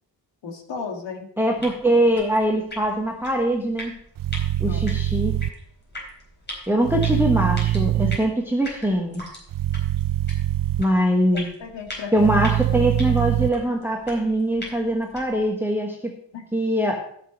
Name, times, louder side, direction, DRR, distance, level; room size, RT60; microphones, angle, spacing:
voice 1, 0.4-1.3 1.6-1.7 4.6-5.0 11.3-12.4 16.3-16.5, left 5 dB, 70° left, 4 dB, 2.0 m, -35 dB
voice 2, 1.4-4.0 4.6-5.4 6.7-9.2 10.8-11.5 12.1-16.1 16.5-17.0, right 1 dB, 5° right, 0 dB, 1.2 m, -22 dB
sound 1, 1.5-15.5, left 1 dB, 25° left, 4.2 m, -41 dB
sound 2, 4.2-5.5 6.8-8.2 9.5-10.8 12.2-13.5, right 13 dB, 50° right, 0.6 m, -23 dB
14.0 x 6.2 x 5.2 m, 0.65 s
wide cardioid pair, 140°, 44 cm